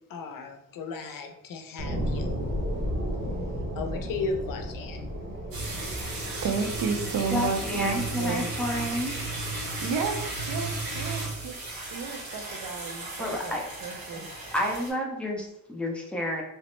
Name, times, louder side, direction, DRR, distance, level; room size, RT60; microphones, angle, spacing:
voice 1, 0.1-2.4 3.7-5.1, left 4 dB, 70° left, 5 dB, 0.5 m, -35 dB
sound 1, 1.8-12.8 13.3-13.4, equal, 35° right, 0.7 m, -35 dB
sound 2, 5.5-14.9, right 2 dB, 90° right, 0.9 m, -35 dB
voice 2, 6.0-8.5 9.6-10.7 11.0-11.6 11.9-13.5 13.8-14.3, right 5 dB, 70° right, 6 dB, 0.5 m, -32 dB
voice 3, 7.3-9.1 13.2-13.6 14.1-14.2 14.5-16.4, equal, 5° left, -1 dB, 0.4 m, -30 dB
3.1 x 2.0 x 3.0 m, 0.83 s
wide cardioid pair, 150°, 34 cm